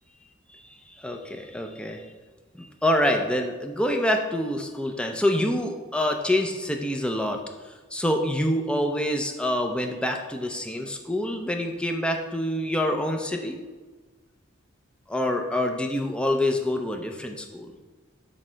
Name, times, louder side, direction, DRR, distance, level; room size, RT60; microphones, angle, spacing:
voice 1, 0.5-2.1 2.6-13.6 15.1-17.7, left 1 dB, 5° left, 3 dB, 0.6 m, -26 dB
8.3 x 3.3 x 6.2 m, 1.3 s
head